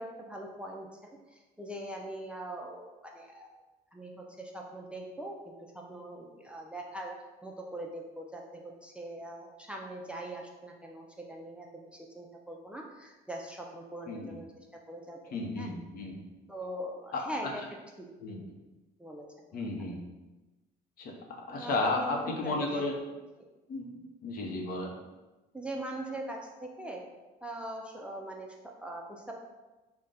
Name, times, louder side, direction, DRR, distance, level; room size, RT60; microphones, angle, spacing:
voice 1, 0.0-3.5 3.9-7.1 7.4-11.9 12.1-14.5 14.9-15.7 16.5-17.6 18.0-18.1 19.0-19.3 21.5-22.9 25.5-27.0 27.4-28.5 28.8-29.3, right 1 dB, 5° right, 0 dB, 0.4 m, -41 dB
voice 2, 15.3-16.2 17.1-17.2 18.2-18.6 19.5-20.0 21.0-21.1 21.5-22.9 23.7-23.9 24.2-24.9, left 2 dB, 60° left, 1 dB, 0.8 m, -33 dB
3.6 x 2.2 x 4.0 m, 1.1 s
cardioid pair, 110°, 17 cm